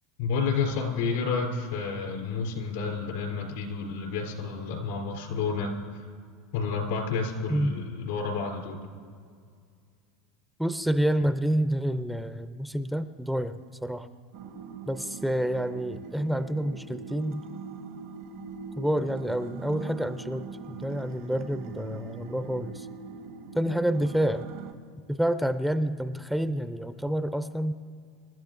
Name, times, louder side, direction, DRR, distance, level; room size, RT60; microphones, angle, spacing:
voice 1, 0.2-6.1 6.5-8.8, left 5 dB, 75° left, 1 dB, 3.4 m, -30 dB
voice 2, 10.6-14.1 14.9-17.4 18.8-22.9 23.5-24.5 25.1-27.7, right 1 dB, ahead, 10 dB, 0.6 m, -28 dB
sound 1, 14.3-24.7, right 5 dB, 65° right, 1.2 m, -42 dB
27.0 x 12.5 x 2.6 m, 2.2 s
hypercardioid pair, 90°, 0 cm